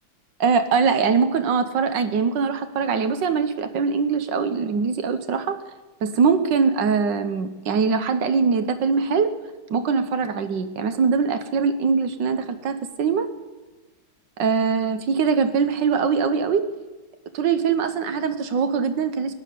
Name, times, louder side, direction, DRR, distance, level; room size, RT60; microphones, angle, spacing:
voice 1, 0.4-5.6 6.0-9.3 9.7-13.3 14.4-16.7 17.3-19.3, right 5 dB, 65° right, 10 dB, 1.6 m, -22 dB
16.5 x 10.5 x 6.7 m, 1.2 s
omnidirectional pair, 2.2 m